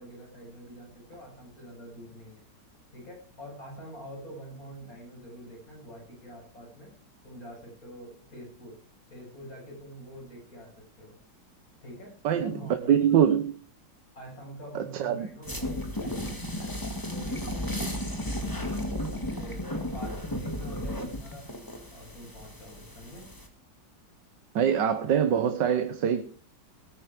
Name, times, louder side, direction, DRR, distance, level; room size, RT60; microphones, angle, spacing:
voice 1, 0.0-2.4 2.9-6.9 7.2-8.8 9.1-11.2 11.8-13.1 14.1-16.8 17.1-18.9 19.4-21.5 21.9-23.3, equal, 50° left, -1 dB, 8.1 m, -45 dB
voice 2, 12.2-13.5 14.8-15.3 24.6-26.2, right 9 dB, 80° right, 10 dB, 1.7 m, -24 dB
sound 1, 15.4-23.5, left 1 dB, 10° left, 2.0 m, -34 dB
18.5 x 9.3 x 5.0 m, 0.39 s
omnidirectional pair, 1.9 m